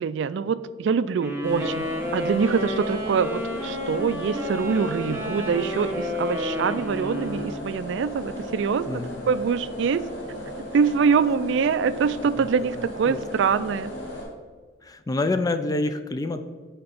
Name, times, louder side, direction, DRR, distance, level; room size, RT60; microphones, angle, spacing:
voice 1, 0.0-1.8 2.1-10.0 10.7-13.9, right 6 dB, 65° right, 14 dB, 0.3 m, -24 dB
sound 1, 1.2-7.7, left 1 dB, 15° right, 1.0 m, -31 dB
sound 2, 1.4-14.2, equal, 65° left, 2.3 m, -36 dB
voice 2, 8.9-9.2 12.3-13.2 14.8-16.4, left 2 dB, 20° left, 9 dB, 0.3 m, -28 dB
6.8 x 4.3 x 5.2 m, 1.5 s
head